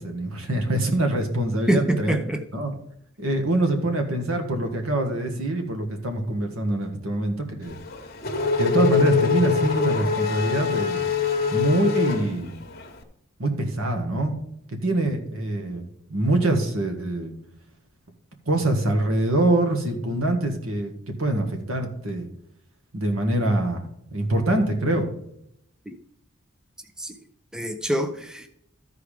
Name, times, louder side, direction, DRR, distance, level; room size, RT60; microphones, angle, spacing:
voice 1, 0.0-2.2 2.5-2.7 3.2-7.8 8.6-11.0 11.5-12.6 13.4-14.4 14.8-17.3 18.5-20.9 21.2-22.3 22.9-25.1, right 1 dB, 85° right, 1.7 m, -24 dB
voice 2, 1.7-2.5 25.9-26.0 27.0-27.1 27.5-28.5, right 1 dB, 5° right, 0.6 m, -25 dB
Race car auto racing / Accelerating revving vroom, 7.7-12.9, left 5 dB, 45° left, 1.1 m, -24 dB
13.5 x 4.7 x 5.0 m
head